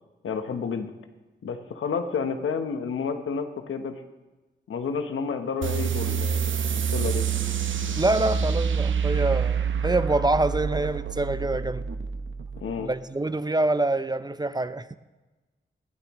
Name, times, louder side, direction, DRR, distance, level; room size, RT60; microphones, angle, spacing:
voice 1, 0.2-0.9 1.4-4.0 4.7-7.2 12.6-12.9, left 5 dB, 90° left, 1.1 m, -30 dB
sound 1, 5.6-12.7, right 6 dB, 75° right, 0.8 m, -27 dB
voice 2, 8.0-11.9 12.8-14.9, right 2 dB, 20° right, 0.6 m, -26 dB
19.5 x 11.5 x 3.1 m
cardioid pair, 50°, 20 cm